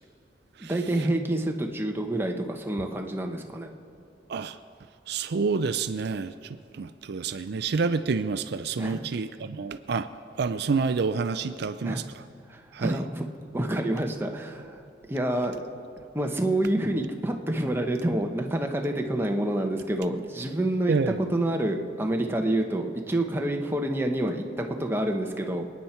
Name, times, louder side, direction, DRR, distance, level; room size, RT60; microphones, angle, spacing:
voice 1, 0.6-3.7 8.8-9.1 11.8-12.1 12.5-13.3 13.5-15.6 16.1-25.6, right 1 dB, 15° right, 3 dB, 1.0 m, -28 dB
voice 2, 5.1-6.3 6.7-10.1 10.4-12.0 12.7-13.0 20.9-21.2, right 4 dB, 60° right, 11 dB, 0.4 m, -28 dB
27.5 x 9.6 x 4.4 m, 2.5 s
head